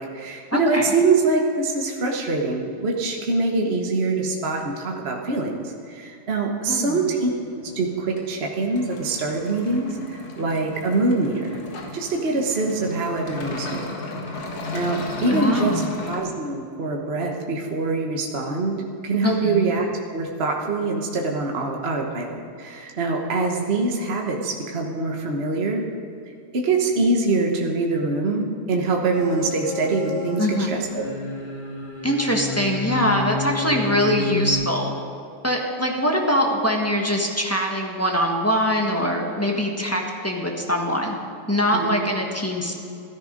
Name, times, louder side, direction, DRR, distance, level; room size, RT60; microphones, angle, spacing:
voice 1, 0.0-7.3 7.6-11.6 11.9-13.9 14.7-18.8 19.0-25.9 26.5-31.1 41.7-41.9, right 3 dB, 35° right, 0 dB, 1.1 m, -24 dB
voice 2, 0.5-0.9 6.7-7.1 15.3-15.9 19.2-19.6 30.4-30.7 32.0-34.9 35.4-41.1 41.5-42.7, equal, 10° left, 1 dB, 1.1 m, -23 dB
sound 1, 7.0-16.2, left 2 dB, 70° left, 2.6 m, -35 dB
sound 2, 29.1-30.5 30.8-34.5, left 4 dB, 35° left, 5.0 m, -30 dB
14.0 x 13.5 x 5.2 m, 2.5 s
omnidirectional pair, 2.4 m